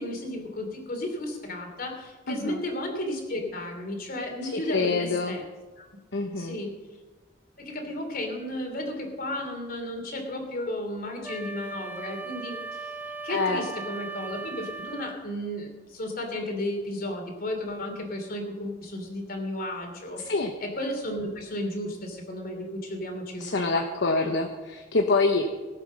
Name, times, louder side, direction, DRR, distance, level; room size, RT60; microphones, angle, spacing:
voice 1, 0.0-5.5 5.8-5.9 6.4-6.7 7.6-12.9 13.2-20.2 20.6-24.3, left 1 dB, 50° left, 3 dB, 3.1 m, -34 dB
voice 2, 2.3-2.6 4.4-5.4 6.1-6.6 13.3-13.6 20.2-20.5 23.4-25.5, left 3 dB, 65° left, 4 dB, 1.0 m, -26 dB
Wind instrument woodwind instrument, 11.2-15.2, right 3 dB, 10° right, 0.8 m, -38 dB
19.5 x 8.1 x 6.4 m, 1.3 s
head